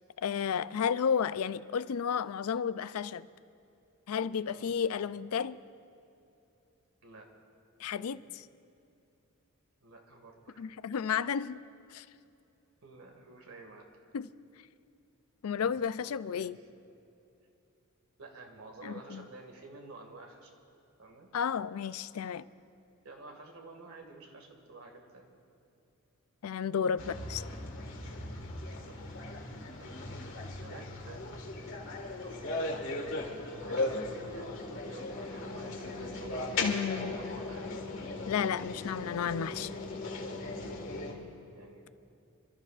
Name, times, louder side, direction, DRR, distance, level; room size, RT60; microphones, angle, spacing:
voice 1, 0.2-3.3 4.1-5.6 7.8-8.2 10.6-11.6 11.9-12.0 14.1-14.3 15.4-16.6 18.8-19.3 21.3-22.5 26.4-27.4 36.6-37.4 38.3-39.7, left 7 dB, 80° left, 15 dB, 0.4 m, -32 dB
voice 2, 4.5-4.8 7.0-7.3 8.1-8.2 9.8-10.7 12.8-13.9 15.6-15.7 16.2-16.5 18.2-20.6 21.0-21.3 23.0-25.3 28.4-29.0 29.8-31.3 31.5-32.8 33.0-34.0 34.3-37.8 41.0-41.9, right 3 dB, 80° right, 3 dB, 1.9 m, -51 dB
sound 1, 27.0-41.1, left 2 dB, 60° left, 1.8 m, -38 dB
28.0 x 13.0 x 2.5 m, 2.8 s
head